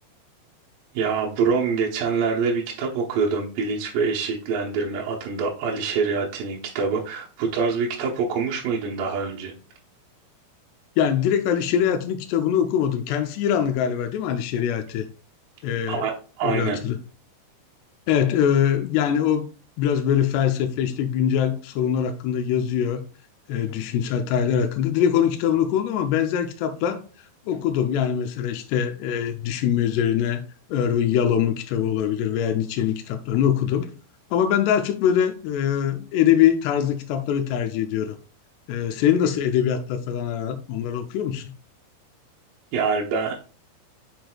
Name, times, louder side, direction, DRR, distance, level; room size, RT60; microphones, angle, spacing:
voice 1, 0.9-9.5 15.9-16.1 16.4-16.8 42.7-43.4, right 5 dB, 75° right, 2.1 m, -25 dB
voice 2, 11.0-15.1 15.6-16.1 16.4-17.0 18.1-19.5 19.8-23.0 23.5-27.0 27.5-30.4 30.7-33.9 34.3-38.2 38.7-41.5, left 9 dB, 80° left, 2.4 m, -23 dB
6.8 x 6.0 x 2.3 m
omnidirectional pair, 5.4 m